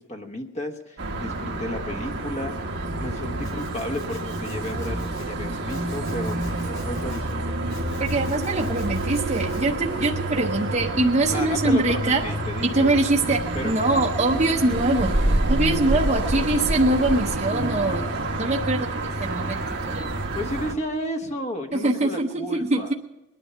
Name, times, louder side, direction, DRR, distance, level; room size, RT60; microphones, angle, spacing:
voice 1, 0.0-2.6 3.0-6.4 6.7-7.6 11.3-12.9 13.2-14.0 20.3-22.9, equal, 30° left, 5 dB, 1.1 m, -33 dB
sound 1, 1.0-20.8, right 1 dB, 50° right, 1.2 m, -28 dB
Domestic sounds home sounds, 3.4-5.3 5.7-7.3 7.7-9.6, left 4 dB, 90° left, 5.7 m, -50 dB
voice 2, 8.0-12.2 12.6-15.2 15.5-18.1 18.4-20.1 21.7-22.9, right 2 dB, 30° right, 0 dB, 0.7 m, -23 dB
sound 2, 8.9-16.3, left 1 dB, 60° left, 4.2 m, -53 dB
20.5 x 10.0 x 5.7 m, 1.0 s
head